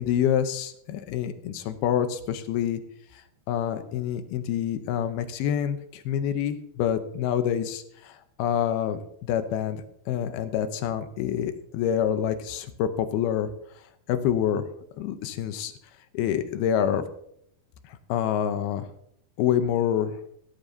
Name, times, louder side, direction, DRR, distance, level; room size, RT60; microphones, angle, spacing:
voice 1, 0.0-2.8 3.5-13.5 14.1-14.7 15.0-15.7 16.1-17.0 17.9-18.9 19.4-20.1, left 9 dB, 80° left, 9 dB, 2.8 m, -27 dB
17.0 x 12.5 x 2.8 m, 0.69 s
omnidirectional pair, 4.5 m